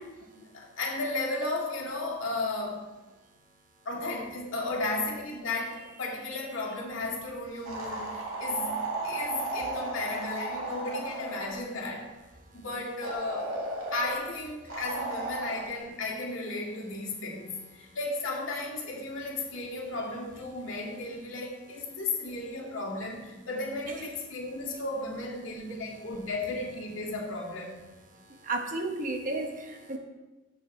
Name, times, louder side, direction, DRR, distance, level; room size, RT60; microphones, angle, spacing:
voice 1, 0.3-2.9 3.9-12.1 12.5-13.6 13.9-27.8, left 2 dB, 70° left, -2 dB, 2.0 m, -34 dB
sound 1, 7.7-11.6 13.0-14.2 14.7-15.6, right 2 dB, 90° right, 2.0 m, -34 dB
voice 2, 28.4-30.0, right 2 dB, 40° right, 3 dB, 1.1 m, -32 dB
14.0 x 6.1 x 3.2 m, 1.1 s
head